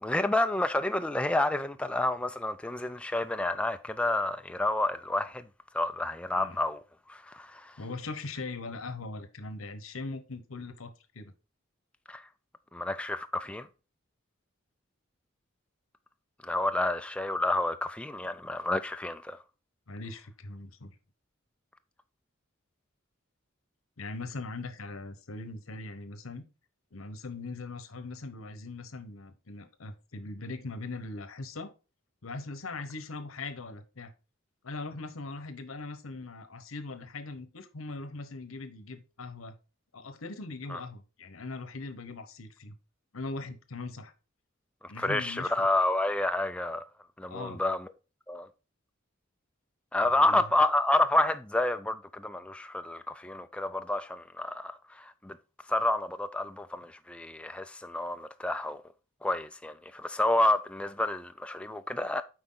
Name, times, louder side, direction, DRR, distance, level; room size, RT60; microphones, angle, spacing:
voice 1, 0.0-5.4 5.7-6.8 7.1-7.8 12.1-12.2 12.7-13.7 16.4-19.4 40.7-40.8 45.0-46.8 47.2-47.9 48.3-48.5 49.9-55.4 55.7-58.8 59.2-62.2, left 1 dB, 5° left, 0.3 m, -29 dB
voice 2, 7.8-11.3 19.9-20.9 24.0-26.4 26.9-31.7 32.2-34.1 34.6-39.5 39.9-42.7 43.1-44.1 44.9-45.7 47.3-47.6 50.0-50.4, left 3 dB, 85° left, 1.0 m, -40 dB
7.9 x 4.7 x 3.8 m
head